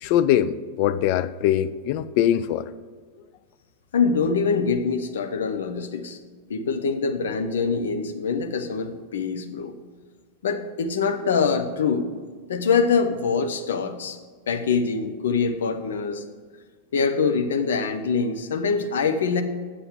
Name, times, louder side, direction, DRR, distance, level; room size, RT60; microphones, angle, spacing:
voice 1, 0.0-2.7 4.7-4.8, left 11 dB, 45° left, 13 dB, 0.4 m, -22 dB
voice 2, 3.9-6.2 6.5-9.7 10.4-12.1 12.5-14.2 14.5-16.2 16.9-19.4, left 5 dB, 65° left, 7 dB, 0.8 m, -24 dB
7.8 x 6.5 x 7.6 m, 1.5 s
figure-of-eight pair, 90°, 0 cm